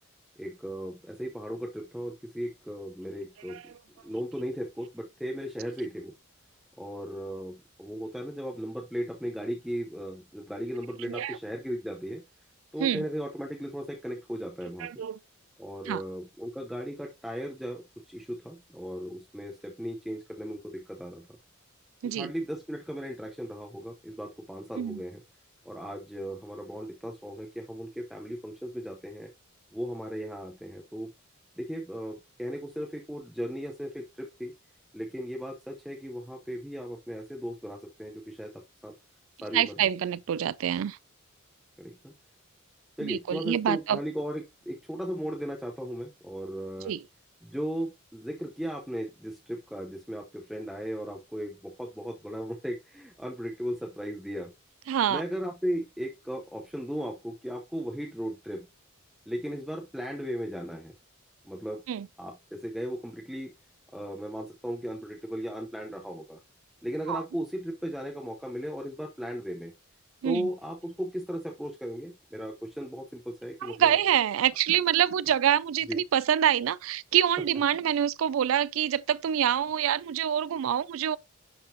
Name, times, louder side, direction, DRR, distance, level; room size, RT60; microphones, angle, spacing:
voice 1, 0.4-3.7 4.0-6.1 6.8-12.2 12.7-15.0 15.6-21.4 22.0-25.2 25.6-29.3 29.7-31.1 31.6-34.5 34.9-38.9 39.4-39.7 41.8-42.1 43.0-46.9 47.4-54.5 55.1-58.7 59.3-60.9 61.4-61.8 62.2-63.5 63.9-66.4 66.8-69.7 70.2-74.0 75.9-76.0, equal, ahead, 0.7 m, -36 dB
voice 2, 11.1-11.4 12.8-13.0 14.8-15.2 15.9-16.0 22.0-22.3 24.8-25.0 39.5-41.0 43.0-44.0 46.8-47.0 54.9-55.2 61.9-62.1 67.1-67.2 70.2-70.5 73.6-81.2, right 10 dB, 65° right, 0.3 m, -26 dB
10.0 x 3.7 x 2.7 m
head